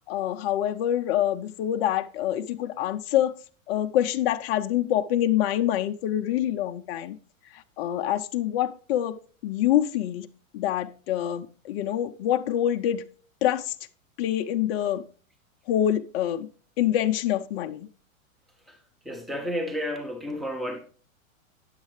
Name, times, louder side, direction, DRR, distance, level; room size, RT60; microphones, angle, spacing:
voice 1, 0.1-3.3 3.7-7.2 7.5-10.3 10.5-13.0 13.4-13.7 14.2-15.0 15.7-16.5 16.8-17.9, left 11 dB, 45° left, 0.6 m, -26 dB
voice 2, 19.0-20.8, equal, ahead, 0.9 m, -31 dB
9.4 x 7.3 x 3.1 m
hypercardioid pair, 120°, 42 cm